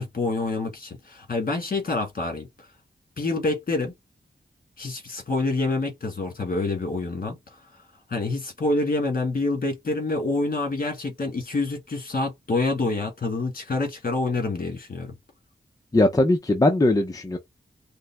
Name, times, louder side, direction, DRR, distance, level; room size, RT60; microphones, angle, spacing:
voice 1, 0.0-2.5 3.2-3.9 4.8-7.4 8.1-15.1, left 3 dB, 50° left, 1.7 m, -27 dB
voice 2, 15.9-17.4, left 2 dB, 20° left, 0.5 m, -20 dB
5.2 x 2.1 x 3.4 m
wide cardioid pair, 120°, 19 cm